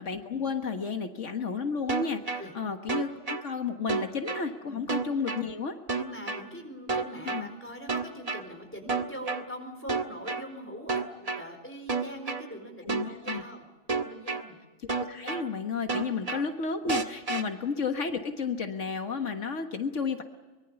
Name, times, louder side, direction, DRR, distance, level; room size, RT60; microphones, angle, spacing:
voice 1, 0.0-5.8 7.3-7.5 12.9-13.4 15.0-20.2, left 5 dB, 80° left, 6 dB, 1.8 m, -32 dB
sound 1, 1.9-2.4 2.9-3.4 3.9-4.4 4.9-5.4 5.9-6.4 6.9-7.4 7.9-8.4 8.9-9.4 9.9-10.4 10.9-11.4 11.9-12.4 12.9-13.4 13.9-14.4 14.9-15.4 15.9-16.4 16.9-17.4, right 4 dB, 30° right, 1.4 m, -29 dB
voice 2, 6.0-13.7 14.0-14.6 16.1-16.2, equal, 10° left, 4 dB, 4.4 m, -42 dB
24.5 x 22.5 x 7.0 m, 1.2 s
omnidirectional pair, 1.2 m